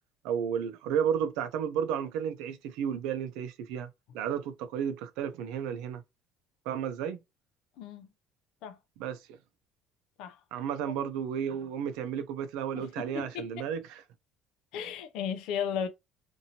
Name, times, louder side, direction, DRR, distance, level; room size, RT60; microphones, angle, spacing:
voice 1, 0.2-6.0 6.7-7.2 9.0-9.4 10.5-14.0, right 8 dB, 85° right, 0.5 m, -33 dB
voice 2, 7.8-8.1 8.6-8.8 10.2-10.4 12.7-13.5 14.7-15.9, left 7 dB, 70° left, 0.6 m, -35 dB
2.8 x 2.6 x 2.8 m
cardioid pair, 155°, 0 cm